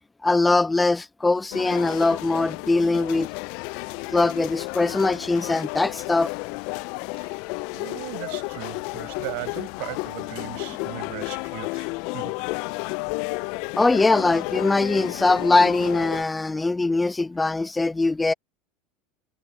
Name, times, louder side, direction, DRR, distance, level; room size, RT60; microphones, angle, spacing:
voice 1, 0.2-3.3 4.1-6.3 13.8-18.3, left 3 dB, 15° left, 0.7 m, -21 dB
sound 1, 1.5-16.2, left 27 dB, 65° left, 0.5 m, -32 dB
voice 2, 7.7-12.5, right 31 dB, 70° right, 5.4 m, -38 dB
hypercardioid pair, 90°, 0 cm